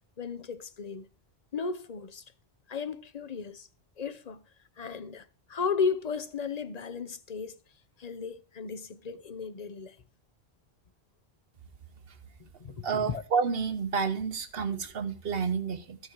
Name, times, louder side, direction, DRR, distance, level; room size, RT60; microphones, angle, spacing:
voice 1, 0.2-1.1 1.5-2.2 2.7-3.7 4.0-4.4 4.8-7.6 8.0-10.0 12.6-13.2 14.7-14.9, left 5 dB, 45° left, 0.8 m, -34 dB
voice 2, 12.8-16.0, right 6 dB, 70° right, 1.2 m, -30 dB
14.0 x 6.5 x 4.6 m
omnidirectional pair, 1.0 m